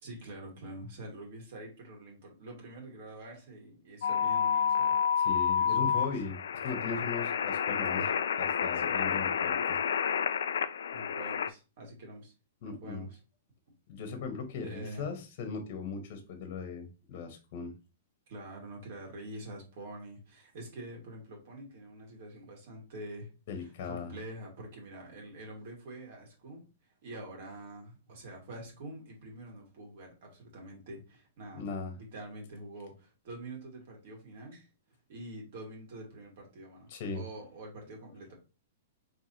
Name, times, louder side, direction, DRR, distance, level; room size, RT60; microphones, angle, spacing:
voice 1, 0.0-5.3 5.5-6.1 8.7-9.0 10.9-12.3 12.6-13.2 14.6-15.1 18.3-23.3 23.6-26.7 27.0-31.6 32.0-34.7 35.1-38.3, right 1 dB, 55° right, 0 dB, 2.1 m, -46 dB
sound 1, 4.0-11.5, left 7 dB, 85° left, 0.4 m, -29 dB
voice 2, 5.2-6.3 6.6-9.8 12.6-13.1 13.9-17.7 23.5-24.1 31.5-31.9 36.9-37.2, left 5 dB, 50° left, 6 dB, 1.2 m, -38 dB
4.8 x 3.4 x 2.8 m, 0.31 s
hypercardioid pair, 155°, 0 cm